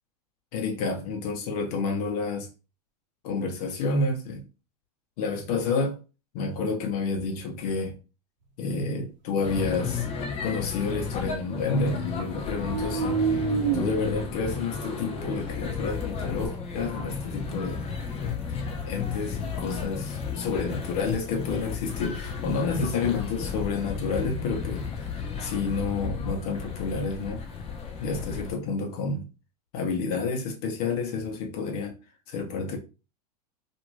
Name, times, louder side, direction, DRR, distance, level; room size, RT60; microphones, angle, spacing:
voice 1, 0.5-2.5 3.2-4.5 5.2-6.0 6.3-8.0 8.6-10.1 10.4-17.8 18.2-27.4 28.0-29.3 29.7-31.9 32.3-32.8, left 4 dB, 65° left, 1.0 m, -30 dB
sound 1, 9.4-28.5, left 6 dB, 30° left, 0.7 m, -33 dB
sound 2, 9.9-12.1 12.5-17.7, right 6 dB, 90° right, 0.7 m, -32 dB
2.6 x 2.5 x 3.0 m
hypercardioid pair, 105°, 21 cm